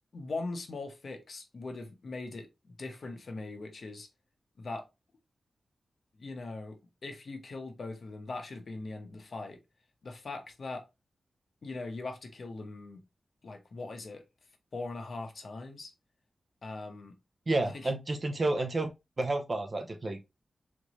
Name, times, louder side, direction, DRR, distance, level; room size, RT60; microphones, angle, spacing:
voice 1, 0.1-4.1 4.6-4.9 6.2-9.6 10.0-10.9 11.6-13.0 13.4-14.2 14.7-15.9 16.6-17.1 17.6-17.9, left 3 dB, 55° left, 1.0 m, -40 dB
voice 2, 17.5-18.9 19.2-20.2, right 2 dB, 35° right, 0.8 m, -30 dB
3.9 x 3.3 x 3.1 m
wide cardioid pair, 135°, 0 cm